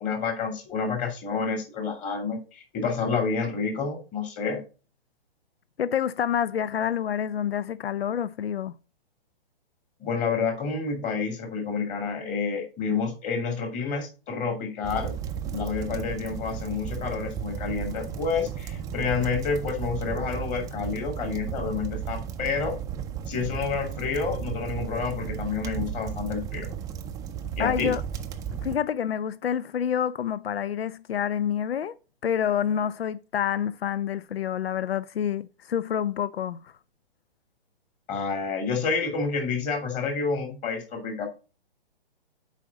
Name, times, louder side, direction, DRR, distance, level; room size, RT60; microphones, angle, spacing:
voice 1, 0.0-4.6 10.0-15.1 15.4-22.8 23.3-26.7 27.6-27.9 38.1-41.3, left 5 dB, 25° left, 2.4 m, -29 dB
voice 2, 5.8-8.7 27.6-28.0 28.6-31.9 32.2-36.7, left 9 dB, 85° left, 0.5 m, -28 dB
sound 1, 14.8-28.8, right 8 dB, 10° right, 0.4 m, -34 dB
7.5 x 5.0 x 4.0 m
hypercardioid pair, 125°, 30 cm